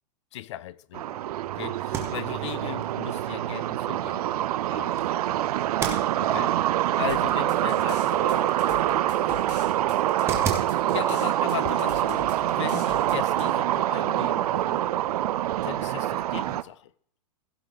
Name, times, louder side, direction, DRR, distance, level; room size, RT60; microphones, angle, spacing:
voice 1, 0.3-1.2 1.5-4.4 4.7-5.1 6.2-6.5 7.0-8.0 10.9-14.8 15.6-16.9, left 13 dB, 45° left, 0.4 m, -37 dB
sound 1, 0.9-16.6, right 13 dB, 65° right, 0.5 m, -25 dB
sound 2, 1.8-13.4, right 6 dB, 10° right, 1.1 m, -40 dB
voice 2, 6.2-6.5 7.6-7.8 8.1-10.3, left 1 dB, 15° left, 4.3 m, -44 dB
sound 3, 7.1-13.4, left 6 dB, 70° left, 2.8 m, -43 dB
15.5 x 8.0 x 4.0 m
supercardioid pair, 175°, 21 cm